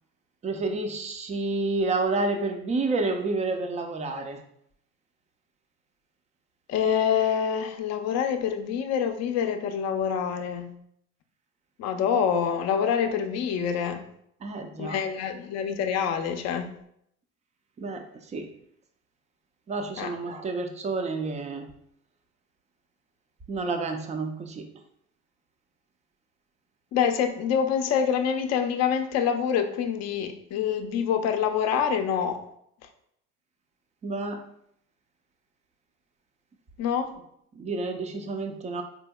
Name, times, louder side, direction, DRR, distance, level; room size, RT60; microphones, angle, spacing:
voice 1, 0.4-4.4 14.4-15.0 17.8-18.5 19.7-21.7 23.5-24.7 34.0-34.4 37.5-38.8, right 3 dB, 20° right, 5 dB, 0.4 m, -29 dB
voice 2, 6.7-10.7 11.8-14.0 14.8-16.7 20.0-20.1 26.9-32.4 36.8-37.1, left 7 dB, 40° left, 6 dB, 0.5 m, -26 dB
4.1 x 2.8 x 2.2 m, 0.72 s
hypercardioid pair, 80°, 40 cm